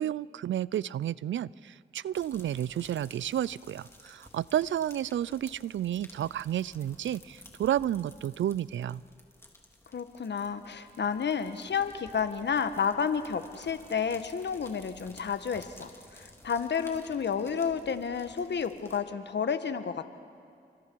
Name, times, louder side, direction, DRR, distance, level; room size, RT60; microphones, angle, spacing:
voice 1, 0.0-9.0, right 11 dB, 75° right, 22 dB, 0.4 m, -31 dB
sound 1, 2.1-19.0, left 1 dB, 10° left, 3.2 m, -55 dB
voice 2, 9.9-20.1, left 6 dB, 65° left, 10 dB, 1.3 m, -31 dB
30.0 x 25.0 x 4.7 m, 2.4 s
cardioid pair, 50°, 20 cm